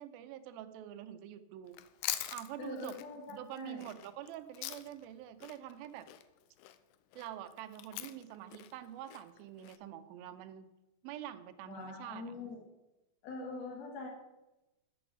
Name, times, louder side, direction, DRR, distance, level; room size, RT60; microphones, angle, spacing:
voice 1, 0.0-1.8 2.3-3.0 3.3-6.1 7.2-10.7 11.0-12.2, right 11 dB, 85° right, 11 dB, 2.5 m, -46 dB
Chewing mastication, 1.7-5.1 5.4-9.8, left 14 dB, 85° left, 1.8 m, -43 dB
voice 2, 2.6-3.9 11.6-12.6 13.2-14.1, left 3 dB, 65° left, 1 dB, 1.8 m, -43 dB
7.7 x 6.9 x 7.1 m, 1.0 s
omnidirectional pair, 4.2 m